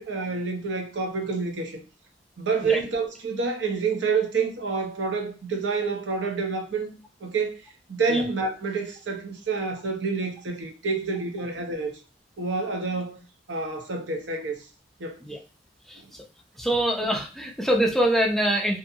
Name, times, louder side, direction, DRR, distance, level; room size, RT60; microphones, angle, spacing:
voice 1, 0.0-1.8 2.4-6.9 7.2-7.6 7.9-11.9 12.4-13.2 13.5-14.6 15.0-15.2, right 4 dB, 75° right, 0.7 m, -28 dB
voice 2, 16.6-18.8, right 1 dB, ahead, 0.4 m, -24 dB
2.7 x 2.5 x 2.6 m
head